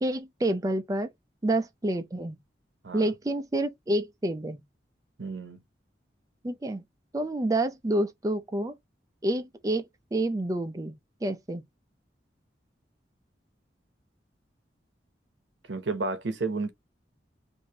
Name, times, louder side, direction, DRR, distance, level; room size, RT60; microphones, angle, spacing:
voice 1, 0.0-1.1 1.4-2.4 2.9-4.6 6.4-6.8 7.1-8.8 9.2-9.8 10.1-11.6, right 1 dB, 20° right, 0.4 m, -28 dB
voice 2, 5.2-5.6 15.7-16.7, right 3 dB, 80° right, 0.8 m, -31 dB
4.7 x 2.7 x 2.7 m
head